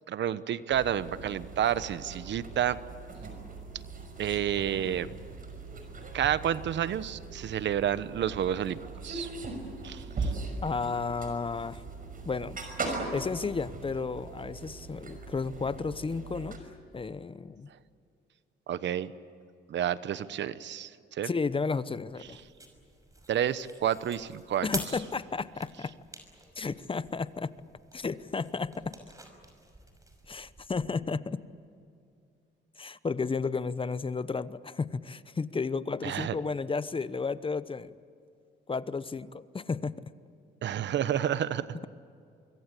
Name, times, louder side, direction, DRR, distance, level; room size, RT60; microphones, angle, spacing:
voice 1, 0.1-2.8 4.2-5.1 6.1-8.8 9.0-9.3 9.8-10.3 18.7-19.1 19.7-21.3 23.3-24.7 36.0-36.3 40.6-41.8, right 10 dB, 65° right, 15 dB, 1.0 m, -30 dB
sound 1, 0.7-16.6, right 3 dB, 45° right, 5.9 m, -40 dB
voice 2, 10.6-11.8 12.2-12.6 13.1-17.7 21.2-22.4 24.6-25.9 26.6-27.5 27.9-29.0 30.3-31.4 32.8-37.9 38.7-40.0, left 4 dB, 25° left, 15 dB, 0.9 m, -33 dB
sound 2, 22.1-30.9, right 2 dB, 15° right, 5.8 m, -47 dB
25.0 x 23.0 x 8.4 m, 2.5 s
cardioid pair, 90°, 20 cm